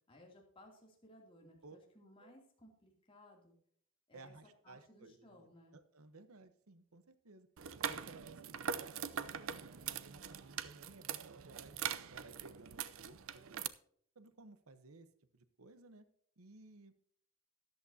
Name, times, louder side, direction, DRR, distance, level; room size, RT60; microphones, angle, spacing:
voice 1, 0.1-3.6 4.1-4.3 4.6-5.8, left 1 dB, 25° left, -1 dB, 2.8 m, -61 dB
voice 2, 4.1-7.5 7.8-9.5 9.9-11.8 12.1-13.7 14.1-15.1 15.3-16.1 16.4-16.9, right 3 dB, 85° right, 11 dB, 1.0 m, -57 dB
sound 1, 7.6-13.7, right 8 dB, 70° right, 0.6 m, -42 dB
13.0 x 11.0 x 2.8 m, 0.64 s
head